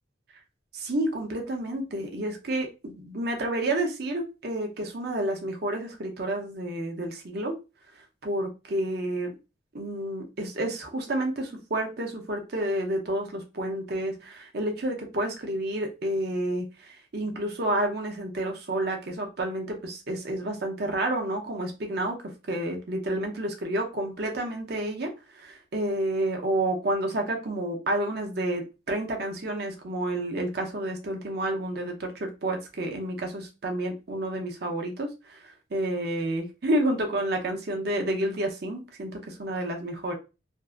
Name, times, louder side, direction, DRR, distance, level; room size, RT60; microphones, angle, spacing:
voice 1, 0.7-7.5 8.2-9.3 9.7-35.4 35.7-40.1, right 1 dB, 55° right, 2 dB, 0.6 m, -30 dB
2.6 x 2.4 x 2.3 m, 0.29 s
head